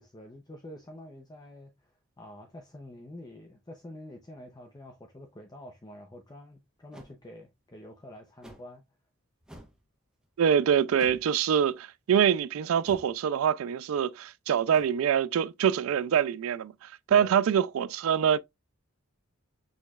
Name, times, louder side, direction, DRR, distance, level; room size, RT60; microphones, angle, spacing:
voice 1, 0.0-8.8 17.1-17.3, left 1 dB, 20° left, 0.6 m, -47 dB
sound 1, 6.9-7.1 8.4-8.7 9.4-9.8 10.9-11.3 12.8-13.2 14.7-14.8, equal, 5° right, 0.9 m, -49 dB
voice 2, 10.4-18.4, right 8 dB, 75° right, 0.3 m, -25 dB
6.3 x 3.1 x 2.3 m
head